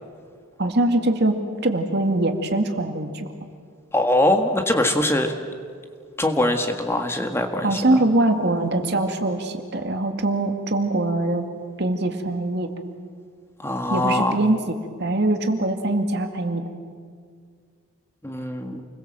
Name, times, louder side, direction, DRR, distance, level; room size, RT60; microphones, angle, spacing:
voice 1, 0.6-3.3 7.6-11.5 11.8-12.7 13.9-16.6, right 2 dB, 50° right, 5 dB, 2.2 m, -23 dB
voice 2, 3.9-5.3 6.2-8.0 13.6-14.4 18.2-18.8, left 1 dB, 10° left, 4 dB, 1.6 m, -22 dB
28.5 x 21.5 x 7.7 m, 2.1 s
head